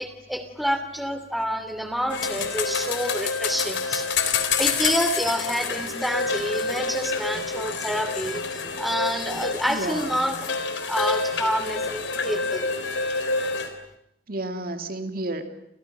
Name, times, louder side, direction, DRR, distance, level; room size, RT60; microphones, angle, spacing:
voice 1, 0.0-4.1 4.6-10.4 10.9-12.7, equal, ahead, 8 dB, 2.8 m, -28 dB
sound 1, 2.1-13.7, left 4 dB, 80° left, 3.9 m, -28 dB
voice 2, 9.7-10.2 14.3-15.5, right 2 dB, 50° right, 7 dB, 2.4 m, -31 dB
30.0 x 28.5 x 6.7 m, 0.78 s
head